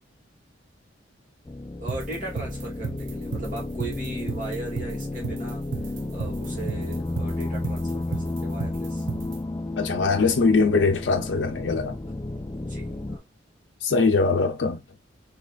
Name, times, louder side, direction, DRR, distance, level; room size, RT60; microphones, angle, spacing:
sound 1, 1.4-13.2, left 2 dB, 20° left, 0.3 m, -32 dB
voice 1, 1.8-5.6 6.1-9.1 12.5-13.3, right 2 dB, 45° right, 2.0 m, -38 dB
sound 2, 1.9-9.4, right 4 dB, 90° right, 0.7 m, -33 dB
voice 2, 9.8-12.0 13.8-14.8, left 4 dB, 70° left, 0.5 m, -22 dB
4.0 x 2.9 x 2.3 m
head